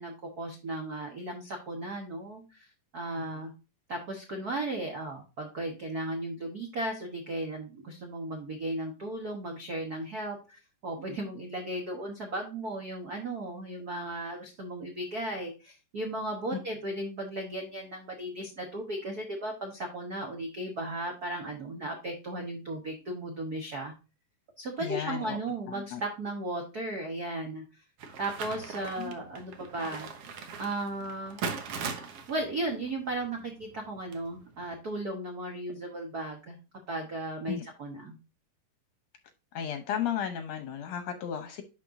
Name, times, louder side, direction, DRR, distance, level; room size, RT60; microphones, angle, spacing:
voice 1, 0.0-2.7 2.9-3.5 3.9-23.9 24.6-27.8 28.2-30.1 30.6-31.4 32.3-36.6 36.9-38.2, right 1 dB, 80° right, 0.8 m, -36 dB
voice 2, 24.8-25.4 25.7-26.0 29.0-29.1 37.5-37.6 39.5-41.6, left 9 dB, 70° left, 1.8 m, -34 dB
sound 1, 28.0-34.8, right 5 dB, 65° right, 1.6 m, -40 dB
11.0 x 4.4 x 2.5 m
omnidirectional pair, 3.8 m